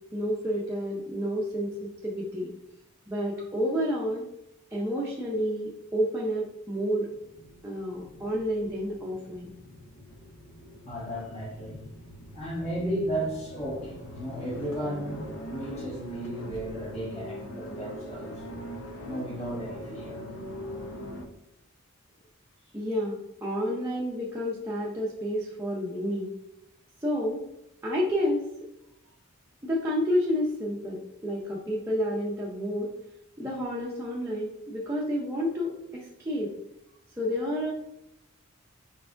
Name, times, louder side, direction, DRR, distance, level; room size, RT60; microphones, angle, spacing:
voice 1, 0.1-2.5 3.1-4.2 4.7-7.1 7.6-9.5 22.7-26.3 27.0-27.4 27.8-28.5 29.6-32.9 33.4-36.5 37.2-37.7, equal, 10° right, -5 dB, 0.5 m, -30 dB
sound 1, 7.1-21.3, equal, 70° left, 0.5 m, -42 dB
voice 2, 10.9-11.8 12.3-18.4 19.0-20.2 20.6-20.9, equal, 30° left, -9 dB, 1.3 m, -34 dB
4.6 x 4.5 x 2.5 m, 0.82 s
head